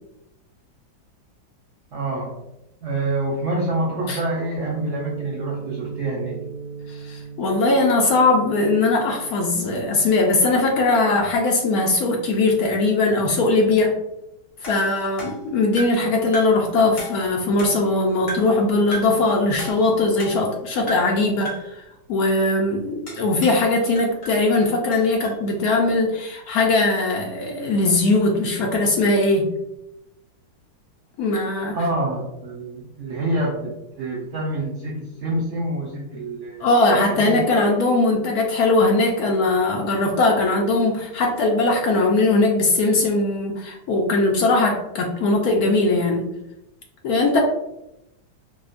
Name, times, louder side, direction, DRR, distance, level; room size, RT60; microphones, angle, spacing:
voice 1, 1.9-2.4 2.8-6.4 31.7-37.4, right 2 dB, 85° right, -4 dB, 0.6 m, -27 dB
sound 1, 4.6-11.4, right 5 dB, 70° right, 1.2 m, -37 dB
voice 2, 6.9-13.9 14.6-21.8 22.1-29.5 31.2-31.8 36.6-46.2 47.0-47.4, left 2 dB, 75° left, 0 dB, 0.8 m, -20 dB
sound 2, 14.6-16.1 16.3-16.7 17.0-17.9 18.3-18.6 18.9-19.2 19.6-20.6 20.9-21.2 21.5-21.8 23.1-23.7 24.0-25.4, right 1 dB, 45° left, 0.8 m, -35 dB
4.6 x 2.1 x 2.4 m, 0.87 s
omnidirectional pair, 2.2 m